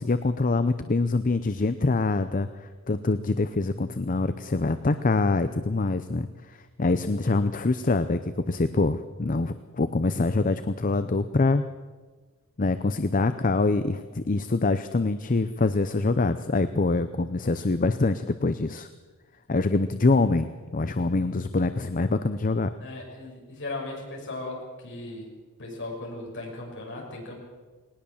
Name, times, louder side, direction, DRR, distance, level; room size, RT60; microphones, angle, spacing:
voice 1, 0.0-6.3 6.8-11.6 12.6-18.9 19.5-22.7, left 3 dB, 40° left, 11 dB, 0.6 m, -25 dB
voice 2, 22.8-25.3 25.6-27.4, left 2 dB, 55° left, -1 dB, 6.2 m, -37 dB
19.5 x 19.0 x 7.2 m, 1.4 s
head